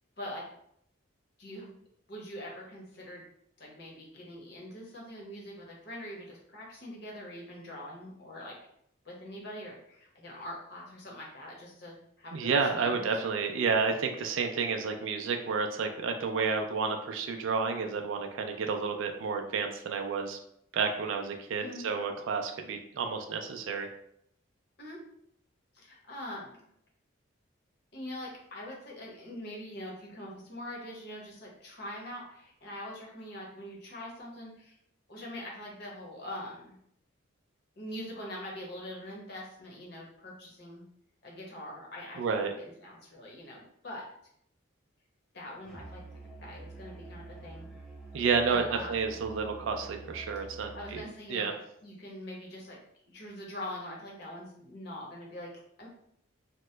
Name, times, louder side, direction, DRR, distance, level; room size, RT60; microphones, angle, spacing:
voice 1, 1.4-1.8 2.1-3.2 3.6-8.5 9.0-13.1 21.6-21.9 24.8-25.0 25.7-26.7 27.9-34.7 35.1-36.7 37.8-40.8 41.2-44.0 45.3-46.0 46.4-47.7 48.5-49.0 50.7-51.6 51.8-52.8 53.0-55.5 55.8-55.9, left 1 dB, 55° left, -3 dB, 0.8 m, -43 dB
voice 2, 12.3-20.4 20.7-23.9 42.2-42.5 48.1-51.0 51.3-51.5, right 5 dB, 75° right, 4 dB, 0.3 m, -30 dB
Musical instrument, 45.7-51.2, right 3 dB, ahead, 0.5 m, -47 dB
2.8 x 2.1 x 3.2 m, 0.71 s
head